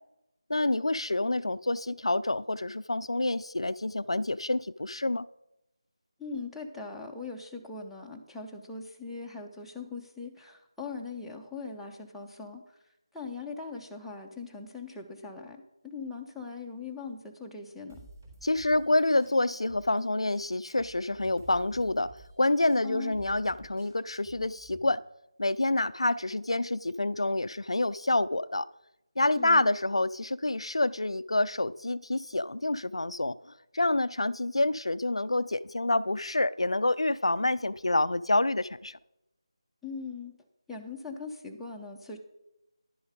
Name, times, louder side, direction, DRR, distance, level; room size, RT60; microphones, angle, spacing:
voice 1, 0.5-5.3 18.4-25.0 25.4-28.7 29.2-33.4 33.7-39.0, left 2 dB, 75° left, 0.4 m, -27 dB
voice 2, 6.2-12.8 13.1-18.0 22.8-23.1 29.4-29.7 39.8-40.3 40.7-42.2, left 4 dB, ahead, 0.6 m, -40 dB
sound 1, 17.9-20.0 20.3-24.9, right 2 dB, 30° right, 3.3 m, -53 dB
11.0 x 7.0 x 5.0 m
figure-of-eight pair, 160°, 3 cm